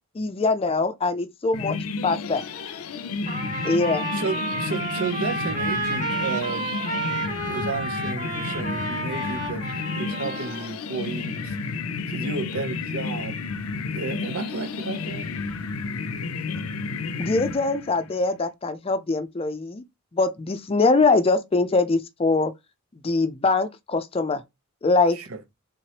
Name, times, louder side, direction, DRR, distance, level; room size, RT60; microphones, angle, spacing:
voice 1, 0.1-1.8 2.0-2.4 3.6-4.1 17.2-19.8 20.1-22.5 23.0-24.4 24.8-25.2, left 3 dB, 25° left, 0.4 m, -23 dB
sound 1, 1.5-18.1, left 4 dB, 85° left, 0.5 m, -31 dB
Trumpet, 3.3-10.7, right 2 dB, 35° right, 1.9 m, -31 dB
voice 2, 4.1-6.8 7.1-11.6 12.1-13.4 13.9-15.3 25.1-25.4, right 4 dB, 75° right, 0.7 m, -32 dB
3.7 x 3.1 x 2.8 m
head